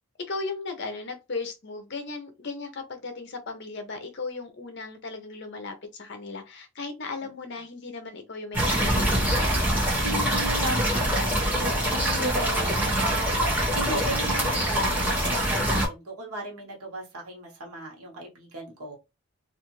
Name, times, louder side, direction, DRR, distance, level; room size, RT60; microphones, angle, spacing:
voice 1, 0.3-9.3, left 3 dB, 50° left, 0.6 m, -36 dB
sound 1, 8.5-15.9, right 1 dB, 10° right, 0.8 m, -24 dB
voice 2, 10.0-19.0, right 1 dB, 85° right, 1.0 m, -36 dB
2.5 x 2.4 x 3.0 m
head